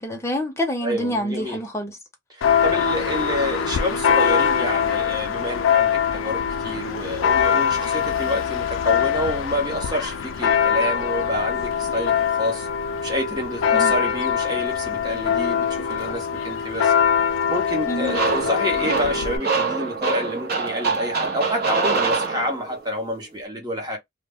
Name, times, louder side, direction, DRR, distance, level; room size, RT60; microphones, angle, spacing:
voice 1, 0.0-2.0 13.7-13.9 17.9-18.2, equal, 15° left, 0.6 m, -27 dB
voice 2, 0.8-1.6 2.3-12.7 13.0-16.9 17.5-24.0, equal, 20° right, 0.8 m, -28 dB
Church bell, 2.4-19.4, left 7 dB, 75° left, 0.3 m, -23 dB
sound 1, 18.1-22.9, right 4 dB, 50° right, 0.6 m, -25 dB
2.2 x 2.0 x 3.4 m
head